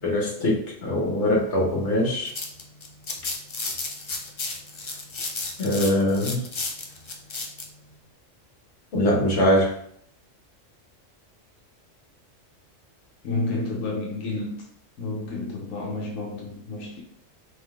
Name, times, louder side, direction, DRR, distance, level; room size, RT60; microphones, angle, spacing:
voice 1, 0.0-2.3 5.6-6.4 8.9-9.7, left 1 dB, 65° left, -2 dB, 1.5 m, -22 dB
sound 1, 2.0-7.7, left 3 dB, 45° left, 0.4 m, -33 dB
voice 2, 13.2-14.6 15.0-17.0, left 2 dB, 90° left, -2 dB, 1.3 m, -30 dB
3.8 x 3.7 x 3.5 m, 0.65 s
omnidirectional pair, 1.3 m